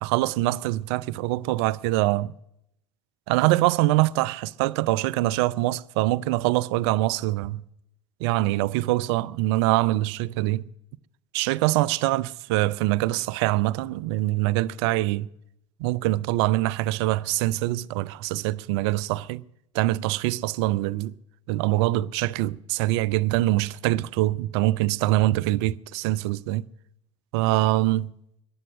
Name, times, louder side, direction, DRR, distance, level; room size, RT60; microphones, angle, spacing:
voice 1, 0.0-2.3 3.3-7.6 8.2-10.7 11.3-15.3 15.8-19.4 19.7-21.2 21.5-26.7 27.3-28.1, right 17 dB, 55° right, 0.5 m, -24 dB
15.0 x 11.0 x 6.4 m
figure-of-eight pair, 70°, 16 cm